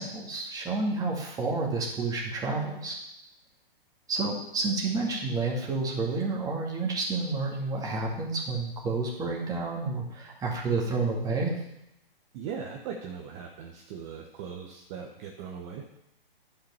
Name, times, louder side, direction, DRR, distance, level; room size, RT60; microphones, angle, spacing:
voice 1, 0.0-3.0 4.1-11.5, right 3 dB, 10° right, -2 dB, 2.2 m, -30 dB
voice 2, 12.3-15.8, right 7 dB, 30° right, 2 dB, 1.1 m, -39 dB
10.5 x 5.8 x 7.0 m, 0.85 s
hypercardioid pair, 135°, 29 cm